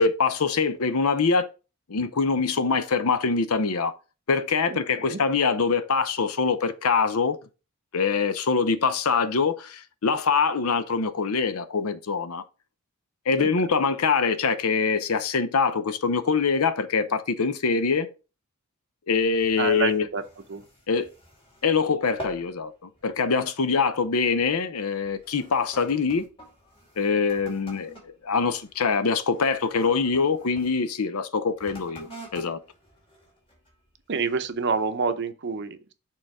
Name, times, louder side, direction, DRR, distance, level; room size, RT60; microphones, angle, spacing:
voice 1, 0.0-1.5 1.9-3.9 4.3-7.4 7.9-12.4 13.3-18.1 19.1-20.1 20.9-21.1 21.6-26.3 27.0-27.9 28.2-32.6, left 5 dB, 70° left, 0.7 m, -24 dB
voice 2, 4.7-5.2 13.3-13.5 19.6-20.2 20.5-20.6 34.1-35.9, right 5 dB, 50° right, 0.7 m, -28 dB
sound 1, 19.1-21.7 22.0-22.6 22.9-23.3 23.9-24.2 24.9-30.7 31.5-33.9 34.4-34.5, equal, 25° left, 2.2 m, -46 dB
6.6 x 3.9 x 4.8 m
head